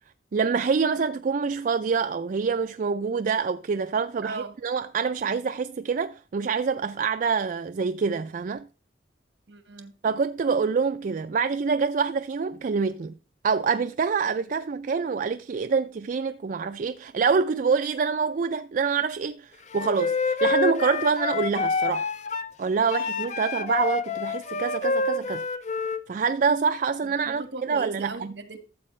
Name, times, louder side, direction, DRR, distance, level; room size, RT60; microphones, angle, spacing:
voice 1, 0.3-8.7 10.0-13.2 13.4-22.1 22.6-25.4 26.1-27.4 27.7-28.1, right 5 dB, 45° right, 0.3 m, -26 dB
voice 2, 4.2-4.5 9.5-10.0 27.0-28.6, right 3 dB, 70° right, 1.5 m, -38 dB
Wind instrument woodwind instrument, 19.7-22.5 22.9-26.0, left 4 dB, 40° left, 0.5 m, -27 dB
12.5 x 7.4 x 3.2 m
head